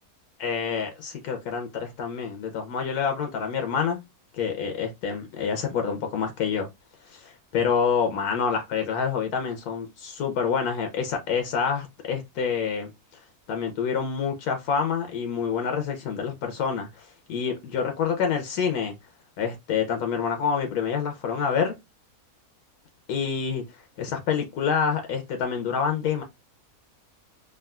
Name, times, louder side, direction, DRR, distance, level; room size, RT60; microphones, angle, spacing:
voice 1, 0.4-4.0 4.4-6.7 7.1-12.9 13.5-18.9 19.4-21.7 23.1-23.6 24.0-26.2, left 6 dB, 80° left, 1.2 m, -27 dB
3.6 x 2.3 x 2.3 m
omnidirectional pair, 1.6 m